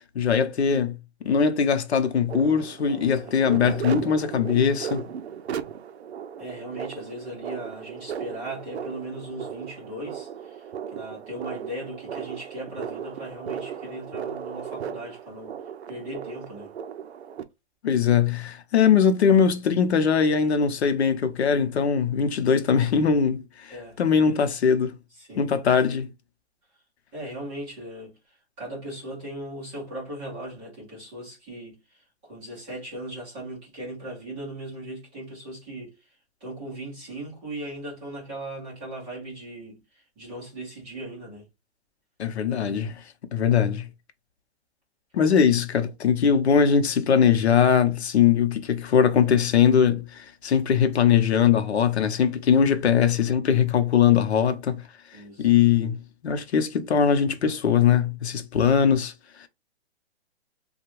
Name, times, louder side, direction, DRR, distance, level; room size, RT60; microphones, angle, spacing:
voice 1, 0.1-1.0 1.2-5.0 17.8-25.0 25.4-26.1 42.2-43.0 43.3-43.9 45.1-54.8 55.4-59.1 59.4-59.5, left 7 dB, 70° left, 0.7 m, -21 dB
sound 1, 2.3-17.4, right 8 dB, 70° right, 0.5 m, -36 dB
voice 2, 6.4-15.6 15.9-16.7 23.7-24.0 25.2-25.5 27.1-36.1 36.4-41.5 55.1-55.5, right 1 dB, 10° right, 0.7 m, -38 dB
3.4 x 2.2 x 3.0 m
hypercardioid pair, 170°, 34 cm